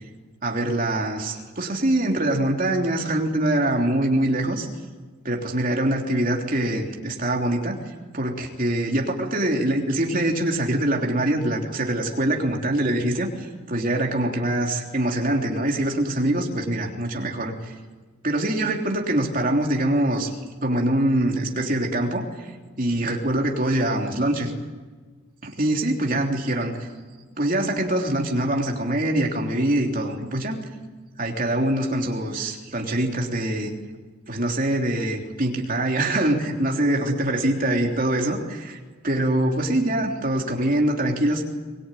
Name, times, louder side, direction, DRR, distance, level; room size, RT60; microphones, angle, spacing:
voice 1, 0.4-4.7 5.2-7.8 8.1-17.7 18.2-20.3 20.6-22.5 22.8-24.5 25.4-26.9 27.4-30.6 31.2-33.7 34.3-38.8 39.0-41.4, right 1 dB, 40° right, 1 dB, 3.4 m, -24 dB
23.0 x 22.5 x 9.2 m, 1.4 s
head